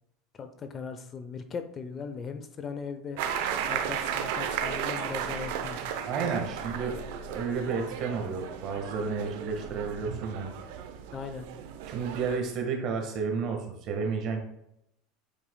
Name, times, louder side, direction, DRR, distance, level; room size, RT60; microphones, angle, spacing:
voice 1, 0.4-3.2 3.7-5.8 6.2-6.4 11.1-11.5, left 5 dB, 35° left, 9 dB, 0.7 m, -38 dB
sound 1, 3.2-12.4, right 8 dB, 70° right, 0.7 m, -34 dB
voice 2, 6.0-7.0 7.3-10.5 11.9-14.4, right 5 dB, 50° right, 3 dB, 1.6 m, -31 dB
8.7 x 4.7 x 2.3 m, 0.82 s
hypercardioid pair, 95°, 0 cm